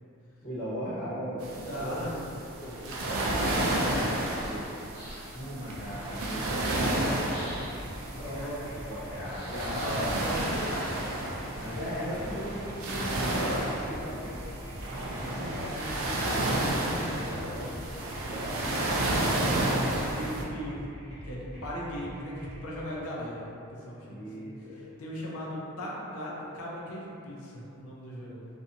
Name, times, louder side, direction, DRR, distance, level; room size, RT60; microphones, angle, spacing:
voice 1, 0.4-1.5 1.8-4.7 5.3-7.8 8.3-10.4 11.6-14.3 14.9-20.0 24.1-24.8, equal, 50° left, -11 dB, 0.9 m, -39 dB
sound 1, 1.4-20.4, right 1 dB, 75° right, 0.4 m, -31 dB
voice 2, 1.6-2.1 8.2-8.8 9.6-11.0 11.3-11.6 12.8-13.3 19.2-20.8 21.2-22.3 22.6-28.5, equal, 75° left, -4 dB, 0.5 m, -38 dB
sound 2, 4.9-5.6 7.3-8.0 9.2-10.2, equal, 10° right, 0.7 m, -46 dB
sound 3, 5.7-22.6, equal, 20° left, 0.8 m, -44 dB
2.5 x 2.3 x 2.8 m, 2.7 s
head